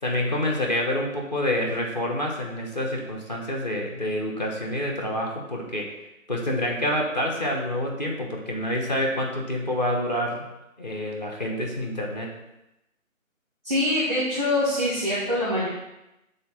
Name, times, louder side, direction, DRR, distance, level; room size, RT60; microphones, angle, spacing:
voice 1, 0.0-5.9 6.3-10.5 10.8-12.3, left 1 dB, 30° left, -1 dB, 1.0 m, -27 dB
voice 2, 13.6-15.7, left 1 dB, ahead, -9 dB, 0.9 m, -24 dB
6.8 x 3.7 x 6.2 m, 0.91 s
figure-of-eight pair, 160°, 41 cm